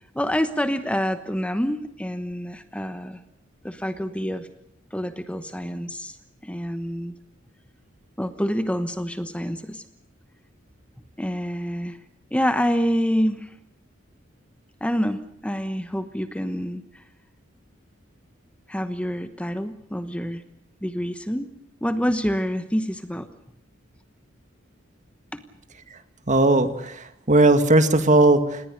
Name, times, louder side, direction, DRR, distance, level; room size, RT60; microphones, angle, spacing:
voice 1, 0.1-3.2 3.6-4.5 4.9-6.2 6.4-7.2 8.2-9.8 11.2-12.0 12.3-13.5 14.8-17.0 18.7-20.4 20.8-21.5 21.8-23.3 25.3-25.4, equal, 5° left, 10 dB, 1.1 m, -27 dB
voice 2, 26.3-28.6, right 2 dB, 40° right, 9 dB, 2.1 m, -18 dB
28.0 x 19.5 x 6.7 m, 0.79 s
head